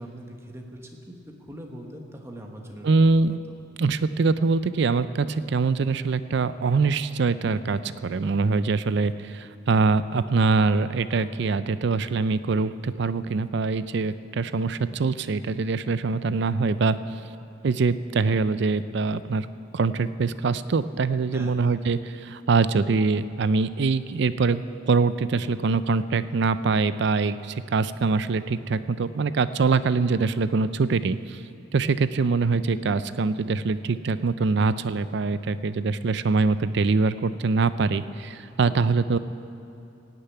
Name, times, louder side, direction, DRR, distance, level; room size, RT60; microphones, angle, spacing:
voice 1, 0.0-2.9 21.3-21.5 38.5-38.8, equal, 15° right, 1 dB, 1.3 m, -42 dB
voice 2, 2.8-3.4 3.8-17.0 17.6-19.5 19.7-31.4 31.7-39.2, right 4 dB, 60° right, 14 dB, 0.4 m, -24 dB
17.0 x 6.8 x 9.2 m, 2.8 s
head